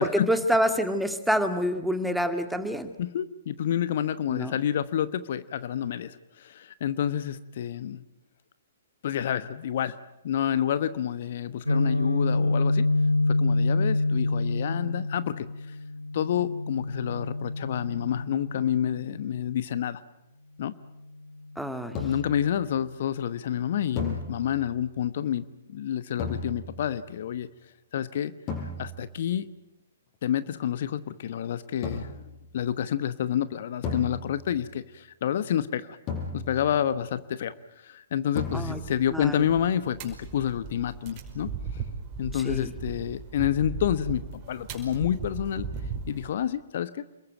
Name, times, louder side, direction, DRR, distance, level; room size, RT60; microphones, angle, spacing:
voice 1, 0.0-2.9 4.3-4.5 21.6-22.0 38.5-38.8 39.1-39.5 42.3-42.7, equal, ahead, 7 dB, 2.0 m, -27 dB
voice 2, 3.0-8.0 9.0-10.0 10.2-12.9 13.3-15.8 16.1-20.0 20.6-20.7 22.0-27.5 27.9-28.3 28.8-29.5 30.2-32.1 32.5-36.0 36.3-41.8 42.2-45.7 46.1-47.0, left 10 dB, 50° left, 14 dB, 1.1 m, -29 dB
Guitar, 11.7-19.5, left 2 dB, 90° left, 1.3 m, -27 dB
sound 1, 21.9-22.5 24.0-24.8 26.2-27.0 28.5-29.2 31.8-32.4 33.8-34.7 36.1-36.9 38.3-39.0, left 4 dB, 30° left, 6.7 m, -35 dB
sound 2, 38.4-46.3, right 6 dB, 30° right, 5.4 m, -38 dB
28.5 x 22.0 x 9.2 m, 0.94 s
figure-of-eight pair, 120°, 0 cm